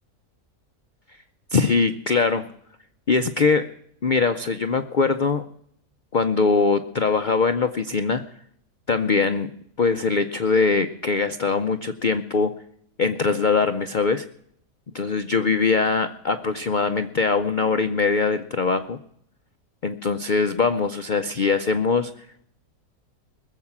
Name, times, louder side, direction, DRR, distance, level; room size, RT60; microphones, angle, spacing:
voice 1, 1.5-2.5 3.1-3.7 4.0-5.5 6.1-8.2 8.9-9.5 9.8-12.5 13.0-14.3 14.9-19.0 19.8-22.3, left 4 dB, 60° left, 9 dB, 0.5 m, -22 dB
20.5 x 7.5 x 7.2 m, 0.68 s
omnidirectional pair, 1.7 m